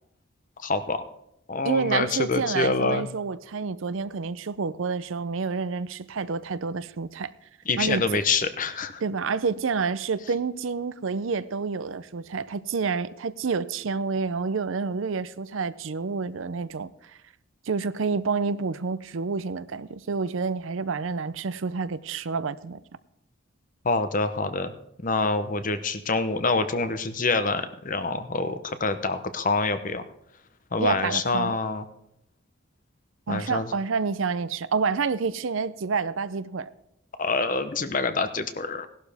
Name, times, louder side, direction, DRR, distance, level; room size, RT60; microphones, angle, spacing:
voice 1, 0.6-1.0 1.5-3.1 7.7-9.0 23.8-24.7 25.0-30.0 30.7-31.8 33.3-33.7 37.2-38.9, left 3 dB, 40° left, 0.8 m, -26 dB
voice 2, 1.6-7.3 7.8-8.0 9.0-16.9 17.7-22.8 30.8-31.5 33.3-36.7, right 5 dB, 70° right, 0.5 m, -28 dB
17.0 x 12.0 x 3.5 m
head